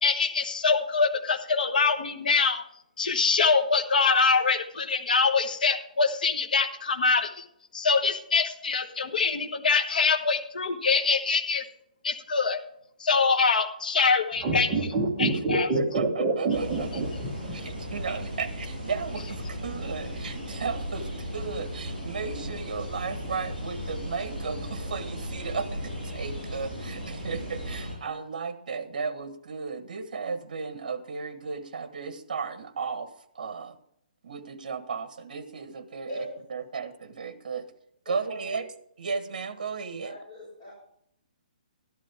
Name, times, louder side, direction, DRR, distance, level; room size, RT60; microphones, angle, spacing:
voice 1, 0.0-2.6 3.0-7.4 7.7-11.6 12.0-12.6 13.0-15.7, left 4 dB, 65° left, 6 dB, 1.3 m, -24 dB
sound 1, 14.4-17.8 18.0-18.1, right 3 dB, 10° right, 1.3 m, -26 dB
voice 2, 15.7-16.9 17.5-33.8 34.2-36.3 36.5-37.7 38.1-38.7 39.0-40.1, right 5 dB, 55° right, 10 dB, 1.3 m, -35 dB
sound 2, 16.5-27.9, equal, 5° left, 6.0 m, -36 dB
voice 3, 38.1-38.7 40.0-40.7, equal, 25° left, -8 dB, 5.2 m, -40 dB
13.0 x 11.5 x 3.5 m, 0.71 s
hypercardioid pair, 175°, 5 cm